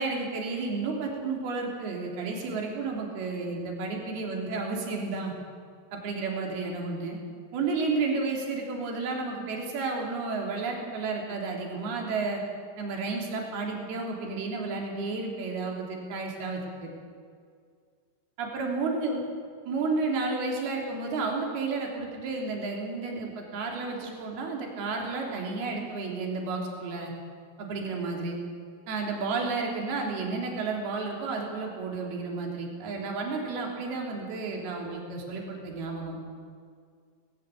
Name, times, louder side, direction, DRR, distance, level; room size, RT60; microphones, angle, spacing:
voice 1, 0.0-5.3 5.9-7.2 7.5-12.4 12.8-16.9 18.4-19.2 19.6-27.1 27.6-28.4 28.9-36.2, right 3 dB, 55° right, 0 dB, 4.9 m, -32 dB
20.0 x 18.5 x 8.3 m, 2.1 s
omnidirectional pair, 5.5 m